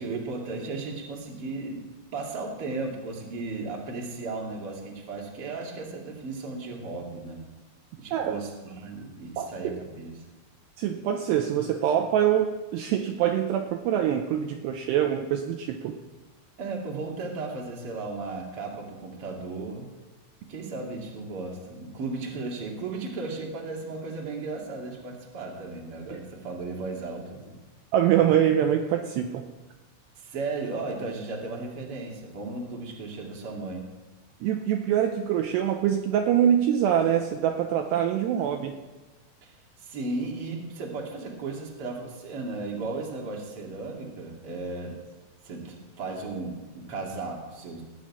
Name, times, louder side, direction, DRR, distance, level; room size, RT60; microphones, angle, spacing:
voice 1, 0.0-1.8 2.1-7.4 8.0-10.1 16.6-19.9 20.5-27.6 30.2-33.8 39.4-39.5 39.8-45.0 45.4-47.8, right 3 dB, 40° right, -1 dB, 2.3 m, -35 dB
voice 2, 9.4-9.8 10.8-16.0 27.9-29.4 34.4-38.8, right 10 dB, 80° right, 5 dB, 2.5 m, -24 dB
18.5 x 6.4 x 8.7 m, 1.2 s
omnidirectional pair, 5.5 m